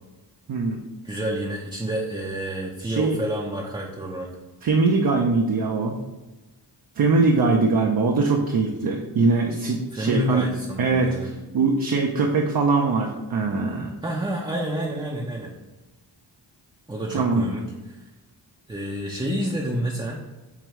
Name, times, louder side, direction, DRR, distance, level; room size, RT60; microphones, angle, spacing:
voice 1, 0.5-0.8 2.8-3.2 4.6-5.9 7.0-10.4 10.8-13.9 17.1-17.4, right 4 dB, 55° right, 0 dB, 0.6 m, -22 dB
voice 2, 1.0-4.3 9.9-11.3 14.0-15.5 16.9-18.0 18.7-20.2, right 1 dB, 10° right, -2 dB, 0.6 m, -29 dB
4.8 x 3.5 x 3.1 m, 1.1 s
cardioid pair, 55°, 43 cm